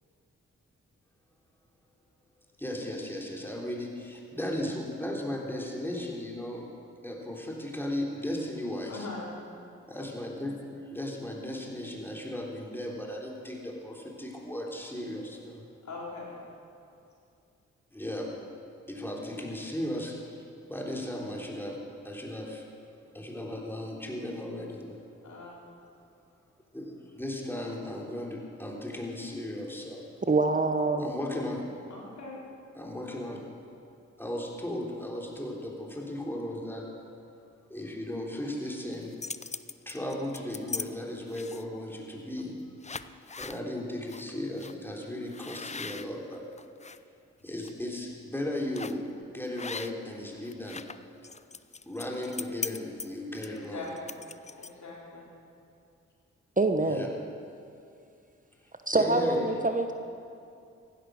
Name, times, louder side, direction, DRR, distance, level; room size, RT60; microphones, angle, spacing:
voice 1, 2.6-6.7 7.0-9.1 9.9-15.6 17.9-18.3 18.9-21.8 22.0-22.6 23.1-25.0 25.4-25.6 26.7-30.1 31.0-31.6 32.7-33.5 34.2-37.1 37.7-39.1 39.8-42.6 43.4-46.4 47.4-50.8 51.8-53.9 56.8-57.1 58.9-59.5, left 1 dB, 5° left, -2 dB, 3.4 m, -36 dB
voice 2, 8.9-9.3 15.8-16.4 25.2-25.7 31.9-32.4 53.5-54.2 54.6-55.3, left 3 dB, 65° left, -4 dB, 4.2 m, -41 dB
voice 3, 30.3-31.1 56.6-57.1 58.9-59.9, right 3 dB, 25° right, 7 dB, 1.0 m, -25 dB
sound 1, 38.9-40.9 41.3-41.8 42.4-42.5 42.8-43.6 44.1-44.2 44.6-44.7 45.3-47.0 47.4-47.7 48.7-49.1 49.6-50.2 50.4-54.9, left 4 dB, 20° left, 0.5 m, -40 dB
15.5 x 11.0 x 6.4 m, 2.5 s
supercardioid pair, 45°, 31 cm